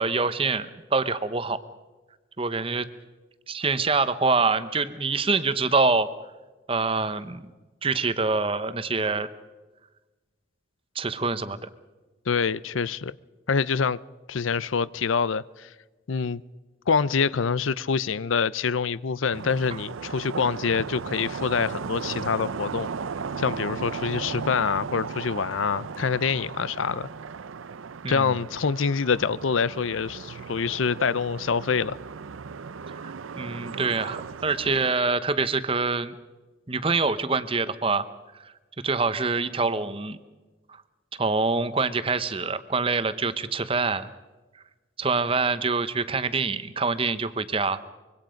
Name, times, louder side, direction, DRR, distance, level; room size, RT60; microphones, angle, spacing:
voice 1, 0.0-1.6 2.4-2.9 3.5-6.1 6.7-7.4 7.8-9.3 10.9-11.7 28.0-28.3 33.4-36.1 36.7-38.1 38.4-38.5 38.8-40.2 41.2-44.1 45.0-47.8, right 4 dB, 25° right, 0.9 m, -25 dB
voice 2, 12.3-13.1 13.5-14.0 14.3-15.7 16.1-16.4 16.9-22.9 23.4-27.1 28.1-32.0, left 5 dB, 80° left, 0.6 m, -26 dB
sound 1, 19.3-35.0, right 5 dB, 90° right, 0.6 m, -36 dB
25.0 x 23.5 x 5.2 m
head